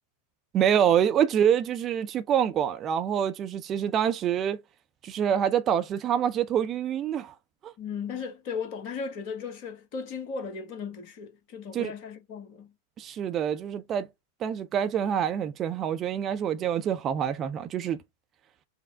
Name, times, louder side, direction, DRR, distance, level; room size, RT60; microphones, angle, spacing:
voice 1, 0.5-4.6 5.0-7.3 7.6-7.7 11.7-11.9 13.0-14.1 14.4-18.0, right 9 dB, 30° right, 0.6 m, -26 dB
voice 2, 7.8-12.7, left 5 dB, 45° left, 1.2 m, -36 dB
5.4 x 2.1 x 3.5 m
figure-of-eight pair, 90°, 0 cm